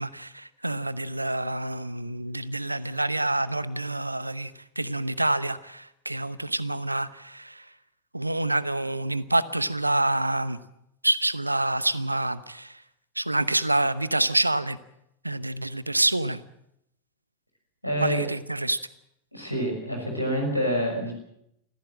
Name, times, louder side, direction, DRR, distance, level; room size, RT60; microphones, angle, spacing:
voice 1, 0.0-7.6 8.1-10.6 11.0-12.8 13.2-14.8 15.2-16.4 18.0-18.8, right 2 dB, 85° right, 17 dB, 0.9 m, -27 dB
voice 2, 17.8-18.2 19.3-21.1, equal, 90° left, 2 dB, 5.9 m, -27 dB
24.5 x 16.0 x 7.6 m, 0.80 s
figure-of-eight pair, 90°, 0 cm